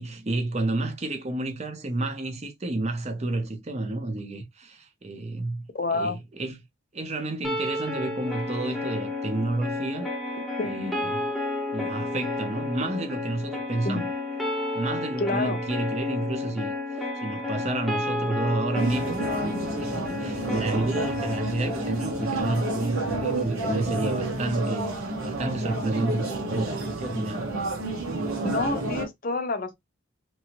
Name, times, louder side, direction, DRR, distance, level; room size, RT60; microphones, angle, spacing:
voice 1, 0.0-5.6 5.9-6.6 6.9-10.4 10.6-11.2 11.7-14.1 14.7-16.7 17.2-19.3 19.8-26.7 27.0-27.5, right 2 dB, 30° right, 0.6 m, -30 dB
voice 2, 5.7-6.2 10.6-10.9 13.8-14.0 15.2-15.6 28.4-29.7, left 3 dB, 40° left, 0.5 m, -28 dB
sound 1, 7.4-23.5, left 2 dB, ahead, 0.8 m, -32 dB
sound 2, 18.7-29.1, right 2 dB, 85° right, 0.9 m, -30 dB
2.9 x 2.6 x 2.8 m
head